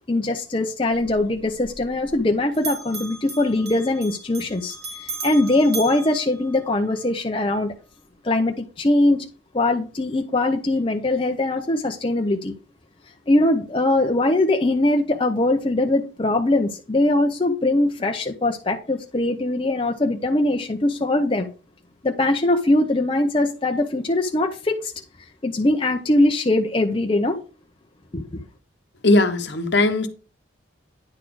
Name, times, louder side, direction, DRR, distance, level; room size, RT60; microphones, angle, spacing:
voice 1, 0.1-7.7 8.2-9.3 9.5-12.5 13.3-21.5 22.0-24.9 25.4-27.4 28.1-28.2, left 2 dB, 25° left, 0.6 m, -21 dB
Bell, 0.9-2.3 2.5-7.0, right 3 dB, 55° right, 2.3 m, -37 dB
voice 2, 29.0-30.1, left 2 dB, 60° left, 1.0 m, -18 dB
9.8 x 4.1 x 4.7 m
head